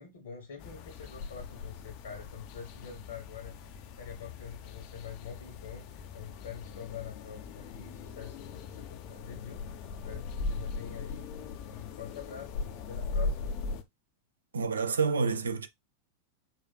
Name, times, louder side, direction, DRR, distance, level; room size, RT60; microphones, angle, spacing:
voice 1, 0.0-3.6 3.9-11.3 11.7-13.5, left 7 dB, 60° left, 0.9 m, -45 dB
sound 1, 0.6-13.8, left 4 dB, 45° left, 0.4 m, -39 dB
voice 2, 14.5-15.7, right 5 dB, 70° right, 0.4 m, -28 dB
4.4 x 2.4 x 2.2 m
figure-of-eight pair, 90°, 0 cm